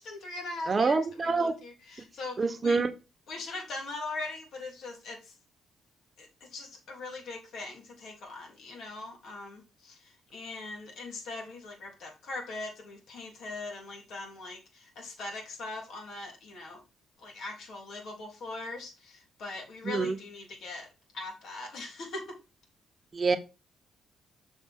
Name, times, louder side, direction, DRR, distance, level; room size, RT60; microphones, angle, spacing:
voice 1, 0.0-2.8 3.3-5.3 6.2-16.8 17.2-20.9 21.1-22.4, left 3 dB, 70° left, 3.3 m, -41 dB
voice 2, 0.7-1.5 2.4-2.9 19.8-20.1 23.1-23.4, right 4 dB, 30° right, 1.1 m, -26 dB
6.7 x 5.5 x 3.6 m
cardioid pair, 90°, 0 cm